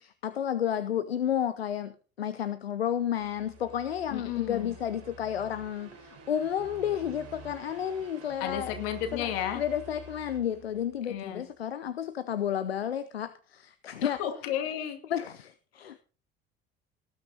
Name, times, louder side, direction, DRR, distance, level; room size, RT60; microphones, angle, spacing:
voice 1, 0.0-8.8 9.1-9.3 9.6-14.2 15.1-16.0, left 9 dB, 80° left, 15 dB, 0.7 m, -31 dB
sound 1, 3.0-11.3, right 3 dB, 55° right, 5.2 m, -49 dB
voice 2, 4.1-4.8 8.4-9.6 11.1-11.4 14.0-15.0, left 10 dB, 65° left, 7 dB, 2.5 m, -33 dB
18.5 x 9.5 x 4.0 m, 0.35 s
figure-of-eight pair, 55°, 30 cm